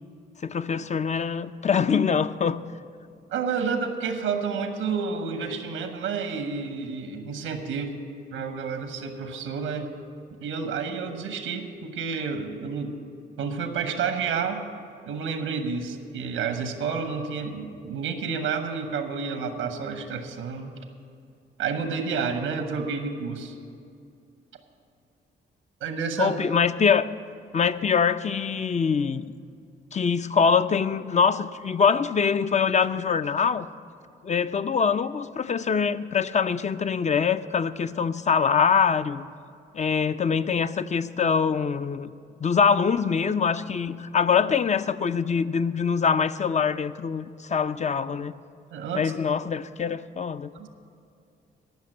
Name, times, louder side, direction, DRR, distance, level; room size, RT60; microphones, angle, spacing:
voice 1, 0.4-2.6 26.2-27.1 27.5-29.3 29.9-33.7 34.2-39.3 39.7-42.1 42.4-48.3 48.9-50.5, left 6 dB, 35° left, 13 dB, 0.5 m, -24 dB
voice 2, 3.3-7.9 8.3-9.9 10.4-12.9 13.4-14.6 15.1-20.7 21.6-23.6 25.8-26.3 48.7-49.1 50.5-50.7, right 5 dB, 90° right, 7 dB, 1.1 m, -30 dB
14.0 x 6.0 x 8.8 m, 2.4 s
supercardioid pair, 55°, 21 cm